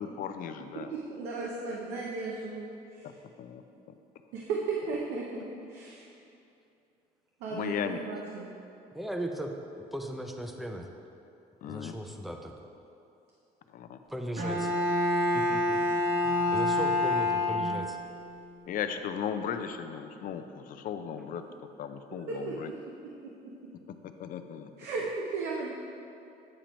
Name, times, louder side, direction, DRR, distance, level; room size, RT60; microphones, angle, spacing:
voice 1, 0.0-0.9 3.4-3.6 7.5-8.0 11.6-12.0 13.7-14.0 18.7-21.4 21.8-22.7 24.2-24.7, left 8 dB, 55° left, 8 dB, 0.4 m, -36 dB
voice 2, 0.7-3.1 4.3-6.1 7.4-8.5 22.1-23.7 24.8-25.7, right 4 dB, 90° right, -2 dB, 0.7 m, -36 dB
voice 3, 8.9-9.5 9.9-10.9 11.6-12.5 14.1-14.7 15.3-15.8 16.2-18.0, equal, ahead, 3 dB, 0.5 m, -37 dB
Bowed string instrument, 14.4-18.1, left 2 dB, 55° right, 1.0 m, -27 dB
8.7 x 3.0 x 5.1 m, 2.7 s
cardioid pair, 110°, 17 cm